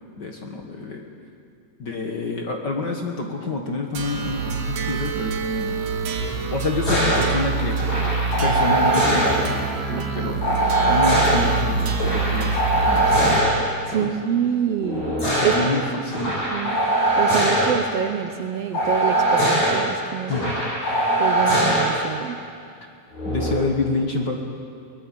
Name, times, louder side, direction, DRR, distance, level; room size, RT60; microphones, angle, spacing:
voice 1, 0.2-1.0 1.8-6.0 6.5-7.8 8.4-9.6 9.9-13.5 13.9-14.1 15.4-16.4 20.3-20.6 23.2-24.4, left 3 dB, 45° left, 2 dB, 1.6 m, -28 dB
sound 1, 4.0-13.4, right 4 dB, 85° right, 3.4 m, -26 dB
sound 2, 6.8-7.2 7.8-9.3 10.4-11.4 11.9-13.5 14.8-15.6 16.1-17.7 18.7-19.7 20.3-21.9 23.1-23.5, right 1 dB, 65° left, 8.9 m, -21 dB
voice 2, 10.0-10.3 13.9-15.5 16.5-16.8 17.2-20.5 21.2-22.4, right 8 dB, 70° right, 6 dB, 1.6 m, -26 dB
23.0 x 19.0 x 7.6 m, 2.3 s
omnidirectional pair, 3.5 m